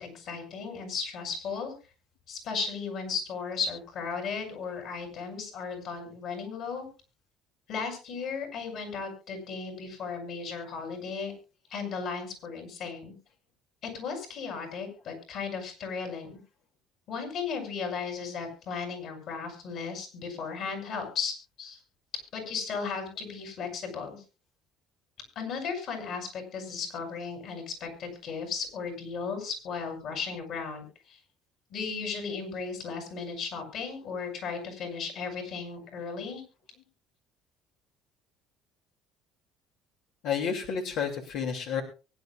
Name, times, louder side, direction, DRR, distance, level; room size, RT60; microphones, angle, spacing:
voice 1, 0.0-1.7 2.3-6.9 7.7-11.3 11.7-13.1 13.9-16.4 17.1-21.8 22.3-24.2 25.3-31.2 31.7-36.4, left 5 dB, 60° left, 5 dB, 7.9 m, -35 dB
voice 2, 40.2-41.8, left 7 dB, 75° left, 1 dB, 3.0 m, -30 dB
23.5 x 11.0 x 2.6 m, 0.33 s
cardioid pair, 110°, 0 cm